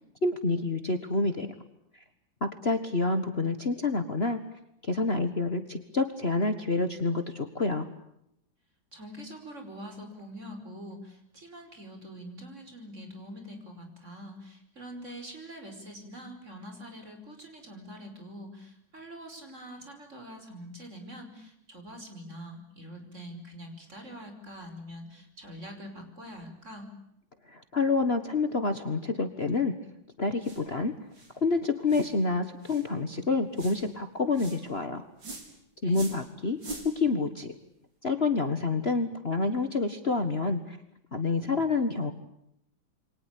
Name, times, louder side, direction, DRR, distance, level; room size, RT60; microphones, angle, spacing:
voice 1, 0.2-1.5 2.4-4.4 4.8-7.9 27.5-29.8 30.2-30.9 31.4-35.1 35.8-36.6 36.8-37.5 38.0-40.8 41.1-42.1, left 3 dB, 35° left, 8 dB, 1.8 m, -28 dB
voice 2, 8.9-26.9 35.8-36.0, equal, 35° right, 5 dB, 5.6 m, -44 dB
sound 1, 30.4-30.6 31.1-31.3 31.9-32.1 32.6-32.9 33.6-33.8 34.3-34.6 35.2-35.5 35.9-36.2 36.6-36.9, right 1 dB, 70° right, 5.7 m, -42 dB
28.5 x 24.0 x 8.5 m, 0.78 s
omnidirectional pair, 2.1 m